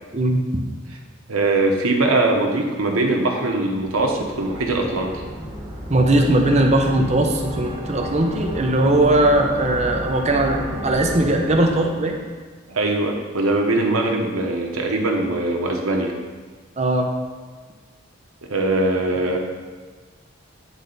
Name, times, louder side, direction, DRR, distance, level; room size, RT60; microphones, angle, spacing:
voice 1, 1.3-5.2 12.7-16.1 18.4-19.4, right 2 dB, 85° right, 1 dB, 0.9 m, -21 dB
sound 1, 3.8-12.3, right 1 dB, 15° right, 1.6 m, -32 dB
voice 2, 5.9-12.2 16.8-17.1, right 1 dB, 30° right, 2 dB, 0.6 m, -19 dB
9.5 x 3.3 x 4.0 m, 1.5 s
head